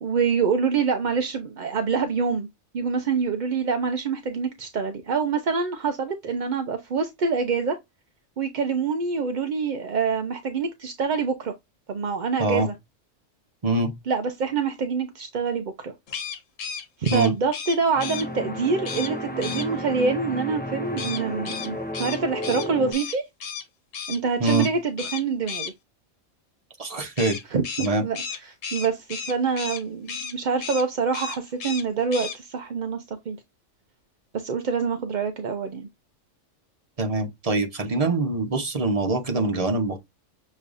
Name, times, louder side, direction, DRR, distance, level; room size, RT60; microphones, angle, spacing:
voice 1, 0.0-2.5 2.7-7.8 8.4-11.5 11.9-12.7 14.1-15.9 17.0-23.2 24.1-25.7 27.5-33.4 34.3-35.9, right 5 dB, 50° right, 0.6 m, -26 dB
sound 1, 16.1-18.3 18.8-19.1 19.4-19.7 21.0-23.6 23.9-24.2 24.4-24.7 25.0-25.7 27.2-29.8 30.1-30.3 30.6-30.8 31.1-31.8 32.1-32.4, left 6 dB, 80° left, 1.4 m, -34 dB
sound 2, 17.9-22.9, equal, 15° left, 0.4 m, -32 dB
voice 2, 26.8-27.4 27.8-28.0 37.0-40.0, right 2 dB, 30° right, 1.1 m, -24 dB
6.7 x 3.1 x 2.5 m
omnidirectional pair, 1.3 m